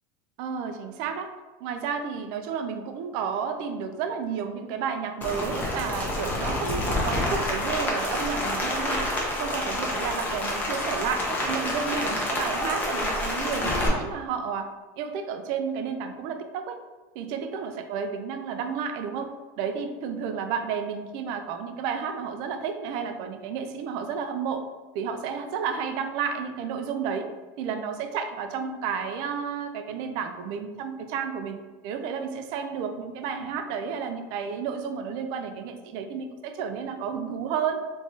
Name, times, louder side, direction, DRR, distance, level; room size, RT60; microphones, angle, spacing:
voice 1, 0.4-1.3 1.6-9.1 9.4-14.7 15.0-16.8 17.1-24.6 24.9-27.3 27.6-31.6 31.8-37.8, right 6 dB, 50° right, 7 dB, 0.4 m, -31 dB
Rain, 5.2-13.9, left 1 dB, 20° left, 0.7 m, -28 dB
3.5 x 3.1 x 2.7 m, 1.2 s
supercardioid pair, 165°, 10 cm